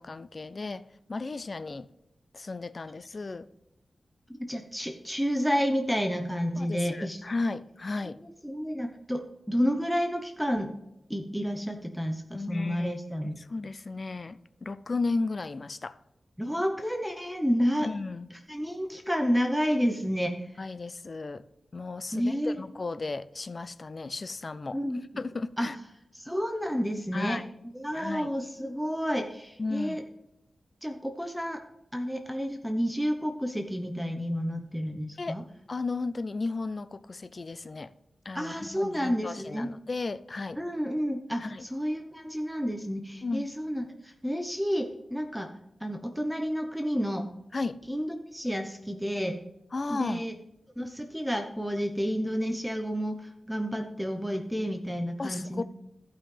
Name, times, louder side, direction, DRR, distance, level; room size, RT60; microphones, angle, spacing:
voice 1, 0.0-1.9 2.3-3.5 6.6-8.2 12.3-12.9 13.2-16.0 17.8-18.3 20.6-21.4 21.7-24.8 25.2-25.7 27.1-27.5 27.9-28.3 29.6-30.1 35.2-35.4 35.7-37.9 38.2-40.6 41.4-41.6 43.2-43.5 47.5-47.8 49.7-50.3 55.2-55.6, left 3 dB, 45° left, 0.5 m, -34 dB
voice 2, 4.3-7.2 8.0-10.7 11.1-13.5 16.4-17.9 18.5-20.6 22.1-22.6 24.7-25.0 25.6-25.7 26.1-27.4 27.7-30.0 30.8-31.6 31.9-35.4 38.3-39.7 40.6-45.5 45.8-47.3 47.9-49.4 49.9-50.3 50.8-55.6, equal, ahead, 0.9 m, -30 dB
15.0 x 5.6 x 3.3 m
wide cardioid pair, 100°, 0 cm